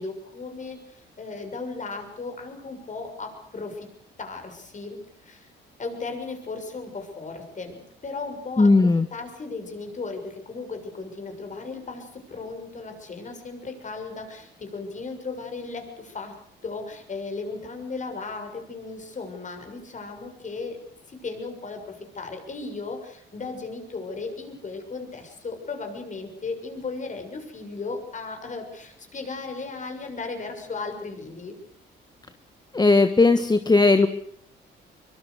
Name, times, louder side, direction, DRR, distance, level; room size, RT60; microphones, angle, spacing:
voice 1, 0.0-3.9 4.2-5.5 5.8-16.3 16.6-20.8 21.1-31.5, left 3 dB, 40° left, 5 dB, 6.9 m, -36 dB
voice 2, 8.6-9.1 32.7-34.1, left 3 dB, 20° left, 10 dB, 1.4 m, -17 dB
24.0 x 23.0 x 6.7 m, 0.66 s
cardioid pair, 90°, 20 cm